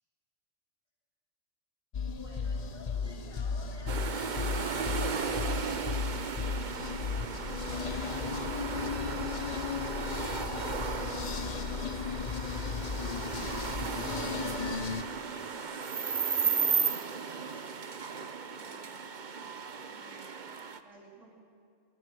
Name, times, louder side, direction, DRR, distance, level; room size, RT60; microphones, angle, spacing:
sound 1, 1.9-15.0, left 6 dB, 45° left, 0.5 m, -35 dB
voice 1, 1.9-4.0 4.6-9.2 9.6-11.8 12.2-17.7 21.1-21.2, equal, 20° right, -6 dB, 8.1 m, -54 dB
sound 2, 3.9-20.8, right 6 dB, 40° right, 0.9 m, -35 dB
sound 3, 4.4-5.5 5.9-6.3, left 7 dB, 80° left, 1.3 m, -55 dB
voice 2, 18.4-20.5 20.8-21.3, right 3 dB, 80° right, -2 dB, 3.8 m, -59 dB
28.0 x 17.5 x 6.1 m, 2.4 s
omnidirectional pair, 1.3 m